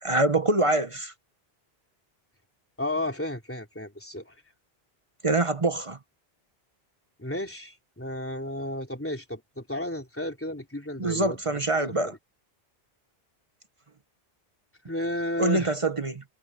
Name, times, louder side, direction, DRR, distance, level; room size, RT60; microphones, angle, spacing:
voice 1, 0.0-1.1 5.2-6.0 11.0-12.1 15.4-16.2, right 2 dB, 35° right, 0.9 m, -25 dB
voice 2, 2.8-4.4 7.2-11.4 14.9-15.7, left 1 dB, 10° left, 3.6 m, -33 dB
omnidirectional pair, 1.0 m